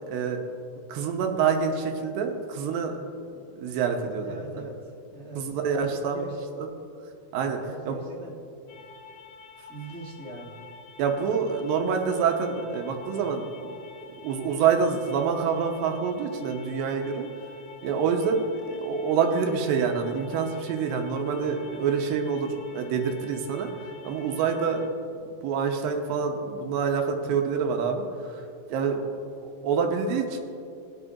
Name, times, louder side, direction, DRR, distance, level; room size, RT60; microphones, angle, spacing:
voice 1, 0.1-0.5 0.9-3.0 3.6-4.4 5.4-6.2 7.3-7.6 7.9-8.0 11.0-13.7 14.2-17.3 17.8-24.8 25.2-30.4, right 6 dB, 85° right, 4 dB, 2.5 m, -27 dB
voice 2, 4.2-6.4 7.6-8.9 9.7-10.6, right 2 dB, 5° left, -8 dB, 0.6 m, -41 dB
sound 1, 8.7-24.9, left 4 dB, 75° left, 2.4 m, -48 dB
19.0 x 8.0 x 2.5 m, 2.5 s
omnidirectional pair, 4.1 m